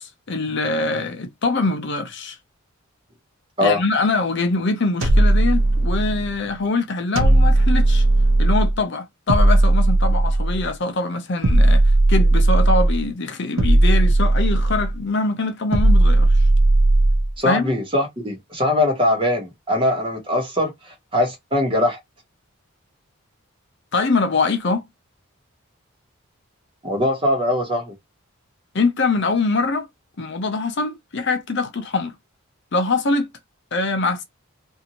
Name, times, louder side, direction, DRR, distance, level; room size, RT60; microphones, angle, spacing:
voice 1, 0.0-2.4 3.6-8.1 8.4-16.5 17.4-17.7 23.9-24.8 28.7-29.9 30.2-32.1 32.7-33.3 33.7-34.2, left 3 dB, 55° left, 0.6 m, -23 dB
sound 1, 5.0-6.3 7.2-8.8 9.3-10.7 11.4-13.0 13.6-15.0 15.7-17.3, right 2 dB, 70° right, 0.7 m, -16 dB
voice 2, 17.4-22.0 26.8-27.9, left 1 dB, 25° right, 1.2 m, -21 dB
2.7 x 2.6 x 2.8 m
head